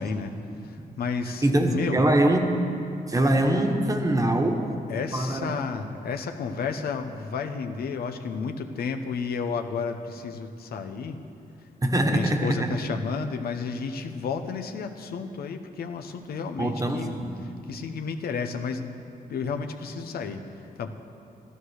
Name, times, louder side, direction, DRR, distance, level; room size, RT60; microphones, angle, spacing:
voice 1, 0.0-2.0 4.9-11.2 11.6-11.7 12.0-17.1 17.4-19.0 19.3-20.9, left 5 dB, 80° left, 6 dB, 0.9 m, -32 dB
voice 2, 1.4-2.6 3.1-4.7 5.1-5.5 11.8-12.7 16.6-17.3, right 1 dB, 20° right, 4 dB, 1.3 m, -23 dB
13.0 x 12.5 x 6.5 m, 2.6 s
cardioid pair, 110°, 16 cm